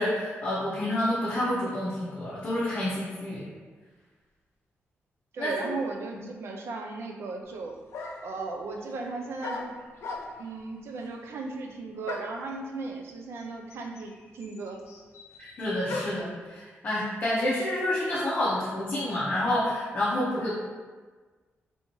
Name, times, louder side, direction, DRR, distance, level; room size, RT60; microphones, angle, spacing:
voice 1, 0.0-3.5 5.4-5.7 15.6-20.5, left 1 dB, 35° left, -8 dB, 0.6 m, -28 dB
voice 2, 5.3-7.8 8.2-9.7 10.4-14.8, right 3 dB, 70° right, 2 dB, 0.4 m, -36 dB
sound 1, 7.4-7.5 7.9-8.4 9.4-10.6 12.1-12.5 13.4-13.5 13.7-16.3, left 3 dB, 90° left, 0.4 m, -38 dB
3.4 x 2.7 x 2.9 m, 1.4 s
wide cardioid pair, 160°, 4 cm